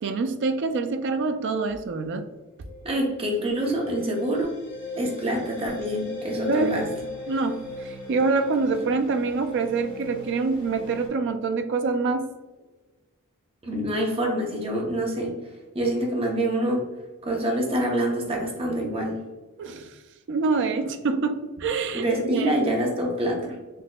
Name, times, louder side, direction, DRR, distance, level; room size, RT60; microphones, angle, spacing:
voice 1, 0.0-2.3 6.5-6.8 7.3-12.3 19.6-20.0 20.3-22.6, right 4 dB, 55° right, 8 dB, 0.3 m, -26 dB
sound 1, 2.4-11.1, left 2 dB, 45° left, 1.3 m, -38 dB
voice 2, 2.8-4.5 5.0-6.9 13.6-15.3 15.7-16.8 17.2-19.2 21.9-23.5, right 1 dB, 25° right, -1 dB, 0.7 m, -26 dB
4.0 x 2.7 x 2.2 m, 1.2 s
head